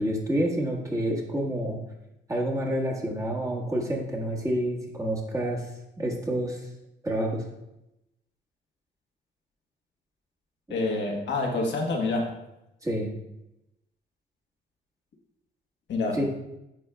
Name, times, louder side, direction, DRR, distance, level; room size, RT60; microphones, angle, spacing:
voice 1, 0.0-1.8 2.3-5.6 6.0-6.7 7.0-7.4 10.7-10.8 12.8-13.1 16.1-16.3, right 1 dB, 15° right, -2 dB, 1.4 m, -28 dB
voice 2, 10.7-12.3 15.9-16.3, left 3 dB, 65° left, 0 dB, 1.3 m, -27 dB
9.3 x 4.6 x 2.3 m, 0.89 s
cardioid pair, 90°, 20 cm